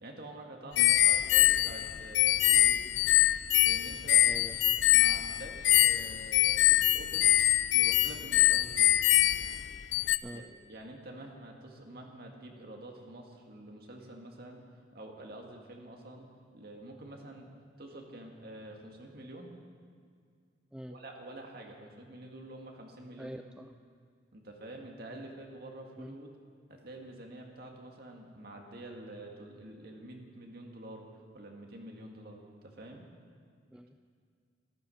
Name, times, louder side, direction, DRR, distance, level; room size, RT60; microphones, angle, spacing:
voice 1, 0.0-2.8 3.6-4.3 4.9-7.4 7.7-8.9 10.3-14.6 14.9-16.3 16.5-17.5 17.8-19.5 20.9-23.4 24.3-26.4 26.7-31.1 31.3-33.0, right 1 dB, 60° right, 1 dB, 1.8 m, -47 dB
sound 1, 0.8-10.2, left 13 dB, 80° left, 0.4 m, -24 dB
voice 2, 4.2-4.8 10.2-10.4 20.7-21.0 23.2-23.7 25.1-25.2 26.0-26.1 33.7-34.0, right 1 dB, 5° right, 6 dB, 0.4 m, -45 dB
13.5 x 12.0 x 6.5 m, 2.2 s
head